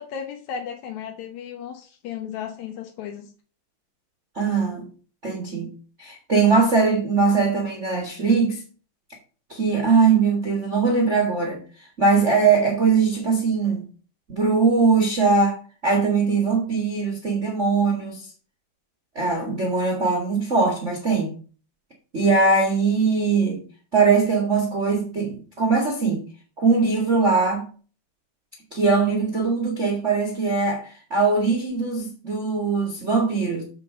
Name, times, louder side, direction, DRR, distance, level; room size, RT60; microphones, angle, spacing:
voice 1, 0.0-3.3, left 8 dB, 75° left, 1.7 m, -35 dB
voice 2, 4.3-4.9 5.2-5.7 6.0-8.6 9.5-11.6 12.0-13.8 14.3-15.6 15.8-18.2 19.1-21.3 22.1-23.6 23.9-26.2 26.6-27.7 28.7-33.6, right 4 dB, 55° right, 0.8 m, -21 dB
6.9 x 5.5 x 6.6 m
omnidirectional pair, 4.5 m